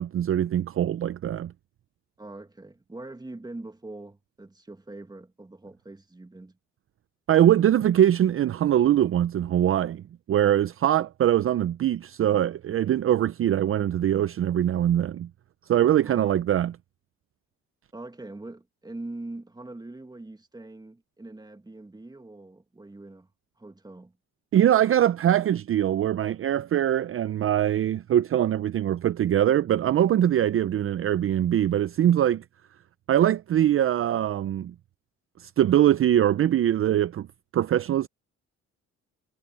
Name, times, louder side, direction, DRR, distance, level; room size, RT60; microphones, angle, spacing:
voice 1, 0.0-1.5 7.3-10.0 10.3-15.3 15.7-16.7 24.5-32.4 33.1-34.7 35.4-37.3 37.5-38.1, right 11 dB, 45° right, 0.5 m, -22 dB
voice 2, 2.2-6.6 16.0-16.4 17.9-23.3 23.6-24.2, right 2 dB, 15° right, 2.0 m, -42 dB
cardioid pair, 90°, 30 cm